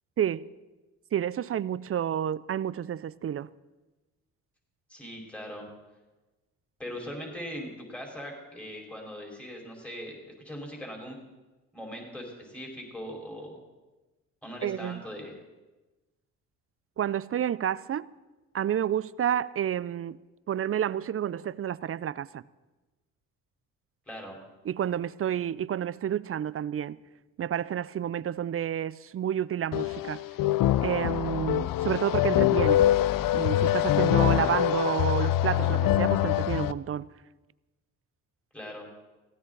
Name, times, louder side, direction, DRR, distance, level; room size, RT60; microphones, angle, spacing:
voice 1, 0.2-0.5 1.1-3.5 14.6-15.0 17.0-18.1 18.5-20.2 20.5-22.4 24.7-27.0 27.4-30.2 30.8-32.8 33.3-37.1, right 10 dB, 40° right, 0.5 m, -30 dB
voice 2, 4.9-5.7 6.8-11.2 11.7-13.6 14.4-15.3 24.1-24.4 38.5-38.9, equal, 5° left, 4.7 m, -40 dB
sound 1, 29.7-36.7, left 13 dB, 65° left, 0.6 m, -24 dB
18.0 x 16.0 x 4.0 m
supercardioid pair, 70°, 36 cm